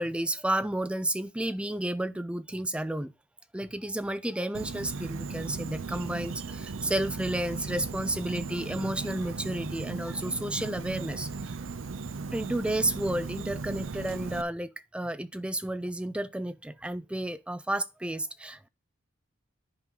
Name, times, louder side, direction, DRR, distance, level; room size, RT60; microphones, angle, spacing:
voice 1, 0.0-3.1 3.5-11.5 12.3-18.7, right 1 dB, 5° right, 0.4 m, -32 dB
Insect, 4.5-14.4, right 4 dB, 65° right, 0.6 m, -37 dB
9.9 x 3.7 x 5.3 m
head